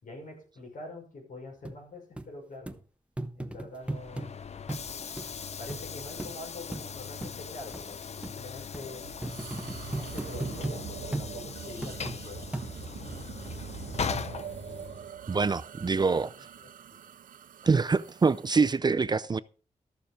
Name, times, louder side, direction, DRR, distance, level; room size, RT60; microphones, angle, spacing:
voice 1, 0.0-2.8 3.3-4.3 5.6-9.1 9.7-12.5 16.6-16.7, left 2 dB, 75° left, 6.0 m, -45 dB
sound 1, 1.7-1.8 2.2-2.3 2.7-2.8 3.2-4.3 4.7-4.9 5.2-5.3 5.7-5.8 6.2-6.3 6.7-6.9 7.2-7.3 7.7-7.8 8.2-8.4 8.7-8.9 9.2-10.8 11.1-11.3 11.8-12.2 12.5-13.0 13.5-13.6, right 2 dB, 10° right, 0.8 m, -36 dB
Train / Sliding door, 3.8-15.2, left 6 dB, 50° left, 0.6 m, -40 dB
sound 2, 9.0-18.8, right 9 dB, 85° right, 0.5 m, -43 dB
voice 2, 15.3-16.3 17.6-19.4, right 4 dB, 30° right, 0.4 m, -25 dB
13.0 x 6.8 x 5.1 m
wide cardioid pair, 130°, 14 cm